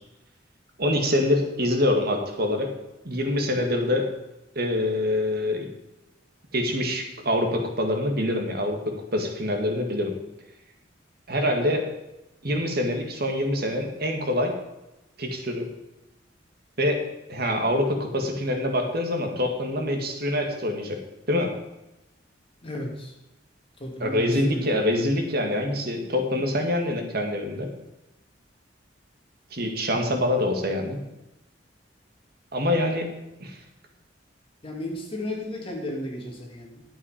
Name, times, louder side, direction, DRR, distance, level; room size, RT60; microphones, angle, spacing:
voice 1, 0.8-2.7 3.0-4.1 4.6-5.7 6.5-10.2 11.3-11.8 12.4-14.5 15.2-15.6 16.8-17.0 17.3-21.0 21.3-21.5 24.0-27.7 29.5-31.0 32.5-33.1 33.4-33.6, left 1 dB, 55° right, 3 dB, 1.9 m, -25 dB
voice 2, 22.6-23.1 23.8-25.0 29.9-30.1 34.6-36.8, left 1 dB, 30° left, 0 dB, 2.4 m, -34 dB
11.5 x 8.7 x 5.1 m, 0.95 s
head